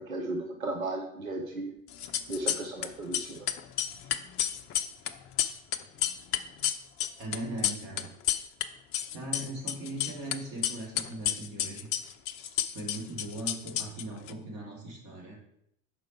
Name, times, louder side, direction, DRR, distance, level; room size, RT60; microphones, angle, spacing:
voice 1, 0.0-1.7 2.3-3.5, right 2 dB, 90° right, 2 dB, 0.7 m, -35 dB
sound 1, 1.9-2.9 3.1-8.6 8.9-10.3 10.6-14.3, left 11 dB, 35° left, 0.5 m, -30 dB
voice 2, 7.2-8.1 9.1-11.9 12.7-15.4, right 1 dB, 50° right, -2 dB, 2.6 m, -39 dB
6.0 x 5.0 x 4.3 m, 0.74 s
figure-of-eight pair, 75°, 41 cm